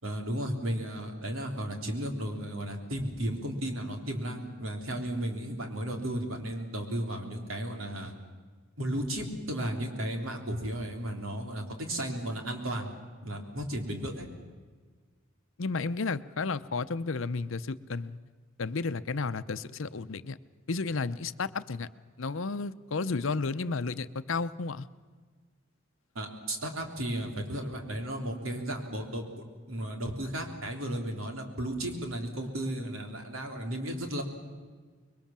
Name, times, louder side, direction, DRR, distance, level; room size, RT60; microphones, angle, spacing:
voice 1, 0.0-8.1 8.8-12.9 13.2-14.3 26.2-34.2, right 1 dB, 80° right, 3 dB, 3.6 m, -34 dB
voice 2, 15.6-18.2 18.6-20.4 20.7-21.9 22.2-24.9, left 4 dB, 70° left, 13 dB, 0.7 m, -32 dB
25.5 x 22.0 x 7.5 m, 1.5 s
head